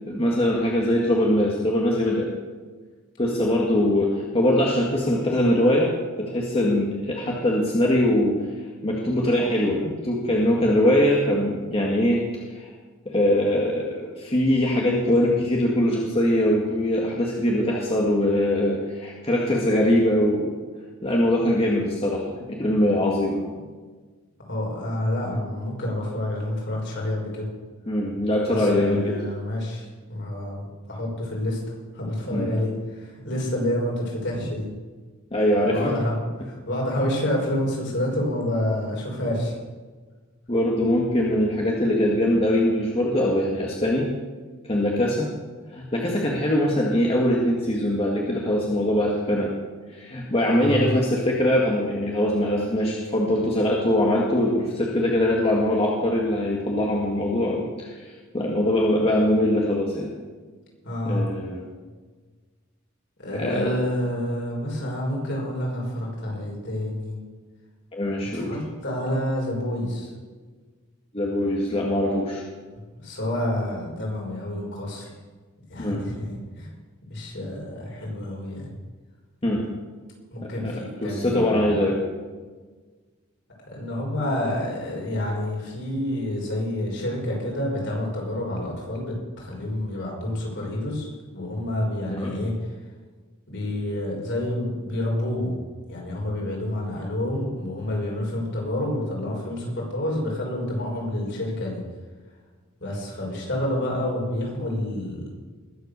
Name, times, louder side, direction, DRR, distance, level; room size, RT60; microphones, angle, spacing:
voice 1, 0.1-2.3 3.2-5.9 6.2-8.4 8.8-12.2 12.5-12.7 13.1-20.5 21.0-23.4 27.9-29.2 32.3-32.5 35.3-35.9 40.5-44.0 44.6-45.3 45.7-49.5 49.9-60.1 61.0-61.6 63.3-63.7 67.9-68.5 71.1-72.4 75.8-76.0 79.4-79.6 80.4-80.7 81.0-82.0 92.1-92.3, left 1 dB, 30° left, -3 dB, 2.0 m, -22 dB
voice 2, 24.5-27.5 28.5-31.6 31.9-34.7 35.7-39.6 50.6-50.9 60.8-61.2 63.2-67.2 68.3-70.1 73.0-75.1 75.7-76.7 77.1-78.7 80.3-81.7 83.7-91.1 91.3-92.5 93.5-95.5 95.9-101.8 102.8-105.3, left 1 dB, 60° left, -2 dB, 5.7 m, -28 dB
21.0 x 8.2 x 6.8 m, 1.4 s
head